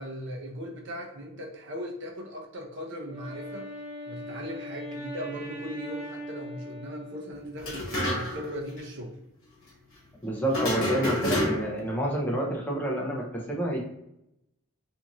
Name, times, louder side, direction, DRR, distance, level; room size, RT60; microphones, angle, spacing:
voice 1, 0.0-3.7 4.1-9.1, equal, 55° right, 1 dB, 0.6 m, -38 dB
Wind instrument woodwind instrument, 3.0-7.8, equal, 35° right, 1.5 m, -41 dB
sound 1, 7.6-8.5 8.8-8.9 10.5-11.9, left 1 dB, 70° left, 1.0 m, -28 dB
voice 2, 10.2-13.8, right 1 dB, 10° left, -2 dB, 0.4 m, -29 dB
2.6 x 2.4 x 2.9 m, 0.84 s
head